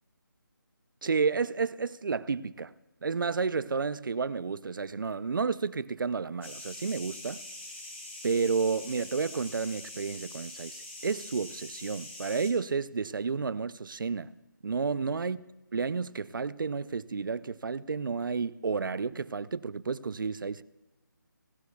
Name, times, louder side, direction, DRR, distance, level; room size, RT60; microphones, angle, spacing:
voice 1, 1.0-2.7 3.0-7.4 8.2-14.4 14.6-15.4 15.7-20.6, right 5 dB, 75° right, 0.5 m, -31 dB
sound 1, 6.4-12.5, left 2 dB, 35° left, 2.6 m, -44 dB
17.5 x 12.5 x 2.3 m
hypercardioid pair, 180°, 11 cm